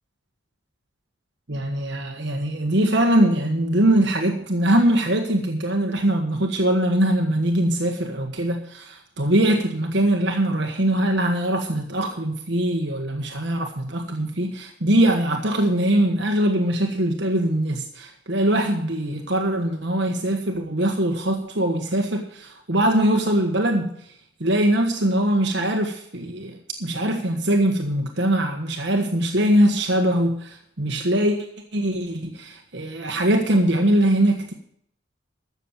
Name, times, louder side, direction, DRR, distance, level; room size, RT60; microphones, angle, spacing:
voice 1, 1.5-23.9 24.4-31.4 31.7-34.5, right 1 dB, 60° right, 3 dB, 1.5 m, -22 dB
13.5 x 7.2 x 7.2 m, 0.67 s
head